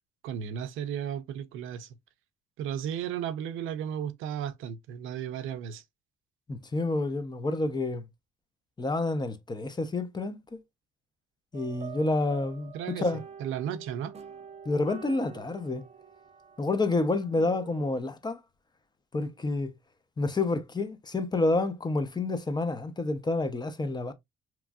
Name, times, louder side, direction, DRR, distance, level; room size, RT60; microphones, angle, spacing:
voice 1, 0.2-1.9 2.6-5.8 12.7-13.0 13.4-14.1, right 9 dB, 85° right, 0.4 m, -34 dB
voice 2, 6.5-8.0 8.8-10.6 11.5-13.2 14.7-15.8 16.6-18.4 19.1-19.7 20.2-24.1, left 2 dB, 20° left, 0.5 m, -29 dB
sound 1, 11.5-18.0, right 7 dB, 35° right, 0.4 m, -46 dB
3.0 x 2.5 x 2.2 m
cardioid pair, 90°, 20 cm